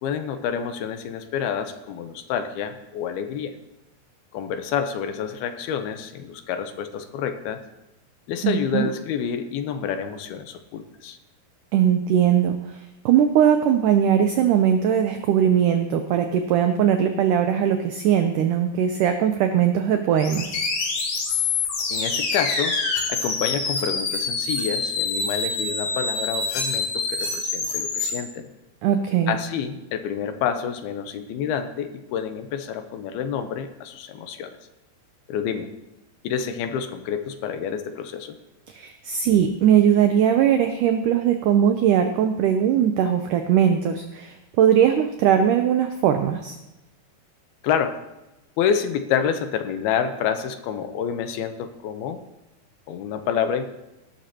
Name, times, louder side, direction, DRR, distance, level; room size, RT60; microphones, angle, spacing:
voice 1, 0.0-3.6 4.3-7.6 8.3-11.2 21.9-22.8 23.1-28.5 29.3-34.5 35.3-35.7 36.2-38.4 47.6-48.0 48.6-52.2 52.9-53.6, left 8 dB, 80° left, 8 dB, 2.7 m, -28 dB
voice 2, 8.4-8.9 11.7-12.6 13.1-20.6 28.8-29.4 38.7-46.6, right 9 dB, 85° right, 6 dB, 1.8 m, -20 dB
sound 1, 20.2-28.2, left 4 dB, 60° left, 3.9 m, -26 dB
18.0 x 12.0 x 2.9 m, 0.98 s
omnidirectional pair, 4.6 m